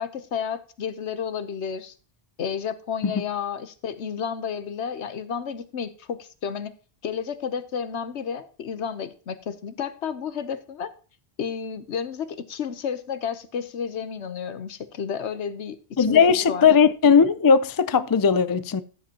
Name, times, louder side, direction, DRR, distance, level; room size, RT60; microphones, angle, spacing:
voice 1, 0.0-1.9 2.4-6.7 7.0-10.9 11.4-16.2 16.5-16.7, left 7 dB, 80° left, 1.2 m, -31 dB
voice 2, 16.0-18.8, left 6 dB, 35° left, 0.3 m, -18 dB
13.5 x 7.7 x 2.9 m
omnidirectional pair, 1.1 m